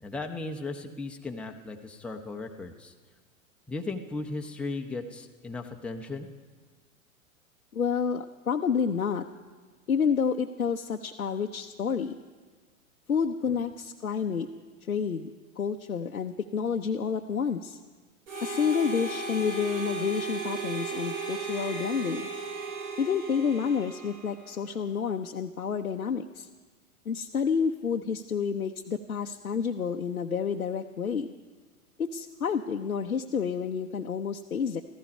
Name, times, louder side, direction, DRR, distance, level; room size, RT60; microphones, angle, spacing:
voice 1, 0.0-2.9 3.7-6.3 13.5-13.7, left 3 dB, 5° left, 2 dB, 0.8 m, -36 dB
voice 2, 7.7-9.2 9.9-12.1 13.1-14.5 14.9-15.3 15.6-17.8 18.4-22.3 23.0-26.5 27.1-31.3 32.0-34.8, left 6 dB, 85° left, 3 dB, 0.7 m, -29 dB
Harmonica, 18.3-24.6, right 4 dB, 60° right, 2.7 m, -36 dB
15.0 x 14.5 x 5.3 m, 1.4 s
figure-of-eight pair, 100°, 43 cm